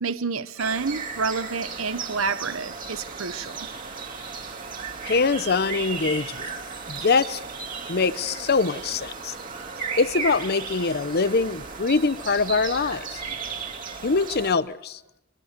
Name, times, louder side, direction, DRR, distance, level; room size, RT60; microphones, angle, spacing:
voice 1, 0.0-3.6, right 4 dB, 80° right, 0.9 m, -29 dB
sound 1, 0.6-14.5, right 5 dB, 40° right, 3.0 m, -35 dB
voice 2, 5.0-6.5 6.9-7.4 7.9-9.4 10.0-13.2 14.0-15.0, left 4 dB, 50° left, 0.8 m, -23 dB
23.0 x 23.0 x 6.7 m
head